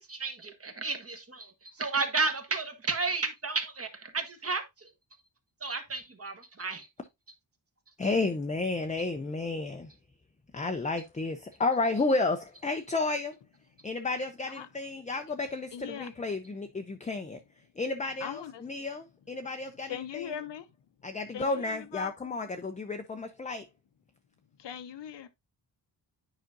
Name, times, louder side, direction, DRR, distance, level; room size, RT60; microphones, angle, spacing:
voice 1, 0.0-4.9 5.6-6.9, right 4 dB, 30° right, 1.2 m, -33 dB
voice 2, 8.0-9.9 10.5-13.4 13.8-17.4 17.8-20.4 21.0-23.7, left 3 dB, 15° left, 0.5 m, -32 dB
voice 3, 15.7-16.1 18.2-18.6 19.9-20.6 21.3-22.1 24.6-25.3, left 9 dB, 75° left, 0.8 m, -40 dB
9.3 x 5.0 x 2.6 m
wide cardioid pair, 125°, 43 cm